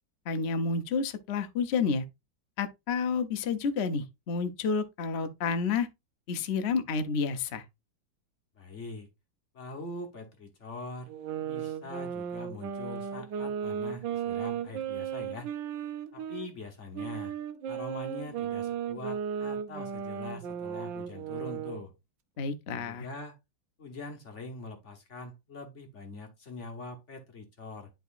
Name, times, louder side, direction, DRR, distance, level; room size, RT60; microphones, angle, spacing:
voice 1, 0.3-2.0 2.6-5.9 6.3-7.6 22.4-23.1, left 5 dB, 65° left, 0.6 m, -30 dB
voice 2, 8.6-9.1 9.5-11.1 11.4-15.5 16.1-17.3 17.7-21.9 22.7-23.4 23.8-27.9, left 2 dB, 45° left, 1.2 m, -43 dB
sound 1, 11.1-16.5 16.9-21.8, right 8 dB, 75° right, 1.4 m, -35 dB
10.5 x 3.9 x 2.5 m
omnidirectional pair, 2.1 m